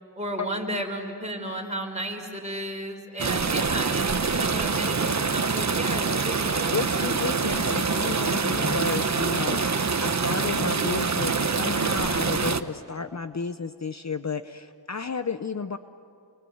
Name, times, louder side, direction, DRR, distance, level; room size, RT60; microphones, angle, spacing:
voice 1, 0.2-6.7, right 1 dB, 15° right, 1 dB, 5.6 m, -33 dB
sound 1, 3.2-12.6, right 4 dB, 40° right, 1.2 m, -25 dB
voice 2, 6.7-15.8, left 5 dB, 40° left, 10 dB, 0.9 m, -32 dB
30.0 x 25.0 x 8.0 m, 2.4 s
cardioid pair, 55°, 42 cm